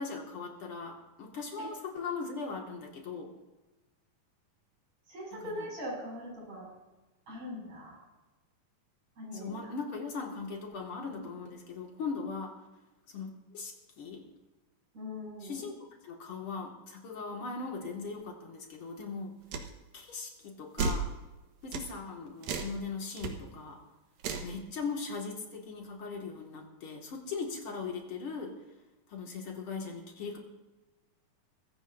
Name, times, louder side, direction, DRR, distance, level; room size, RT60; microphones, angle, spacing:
voice 1, 0.0-3.3 5.3-5.7 9.3-12.6 13.1-14.2 15.4-15.7 16.0-19.3 19.9-21.1 21.6-23.8 24.4-28.5 29.1-30.4, left 4 dB, 45° left, 0 dB, 2.5 m, -39 dB
voice 2, 5.1-6.7 7.3-8.0 9.2-9.5 14.9-15.6, left 1 dB, 50° right, -3 dB, 7.7 m, -41 dB
sound 1, 19.5-19.7 20.8-21.1 21.7-21.9 22.4-22.8 23.2-23.3 24.2-24.5, right 4 dB, 85° right, 3.1 m, -32 dB
23.5 x 15.0 x 2.7 m, 1.1 s
omnidirectional pair, 4.0 m